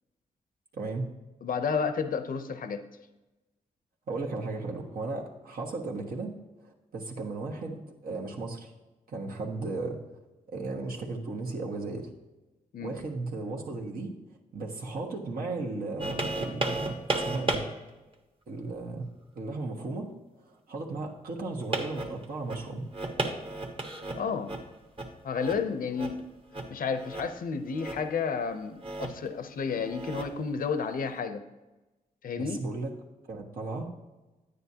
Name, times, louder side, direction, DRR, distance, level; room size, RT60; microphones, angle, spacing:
voice 1, 0.7-1.1 4.1-6.3 6.6-8.7 9.1-10.0 10.5-12.1 12.8-14.1 14.5-17.7 18.5-20.1 20.4-22.9 32.4-32.9 33.3-33.9, right 3 dB, 70° right, 0 dB, 1.4 m, -35 dB
voice 2, 1.4-2.8 12.7-12.9 24.2-24.5 25.2-26.3 26.7-31.4 32.2-32.6, left 5 dB, 65° left, 10 dB, 0.6 m, -31 dB
sound 1, 16.0-17.6 18.1-18.2 21.6-24.6 25.0-25.1 25.4-25.6 25.9-26.2 26.5-26.7 27.0-27.4 27.7-28.2 28.8-29.3 29.7-30.5 31.1-31.2, right 2 dB, 35° right, 1.2 m, -33 dB
9.8 x 9.1 x 2.8 m, 1.1 s
cardioid pair, 75°, 16 cm